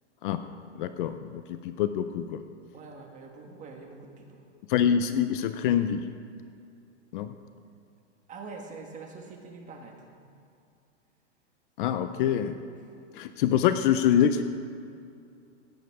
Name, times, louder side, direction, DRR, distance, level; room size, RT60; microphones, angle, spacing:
voice 1, 0.7-2.4 4.7-6.1 7.1-7.3 11.8-12.6 13.1-14.4, left 9 dB, 45° left, 10 dB, 0.6 m, -25 dB
voice 2, 2.7-4.4 8.3-10.2, right 4 dB, 20° right, 2 dB, 1.7 m, -44 dB
16.5 x 9.4 x 4.8 m, 2.5 s
hypercardioid pair, 140°, 36 cm